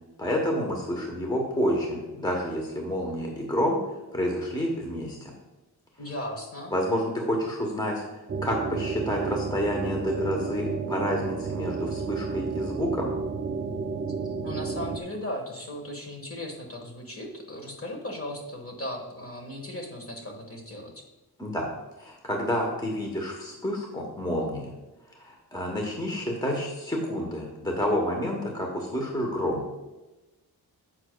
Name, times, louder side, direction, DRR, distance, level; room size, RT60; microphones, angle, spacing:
voice 1, 0.2-5.3 6.7-13.1 21.4-21.7 22.0-24.7 25.1-29.7, equal, 10° left, 0 dB, 0.9 m, -29 dB
voice 2, 6.0-6.7 14.4-21.0, left 1 dB, 35° left, 2 dB, 1.4 m, -37 dB
sound 1, 8.3-15.0, right 4 dB, 30° right, 0.3 m, -31 dB
9.8 x 7.4 x 2.2 m, 1.1 s
wide cardioid pair, 145°, 39 cm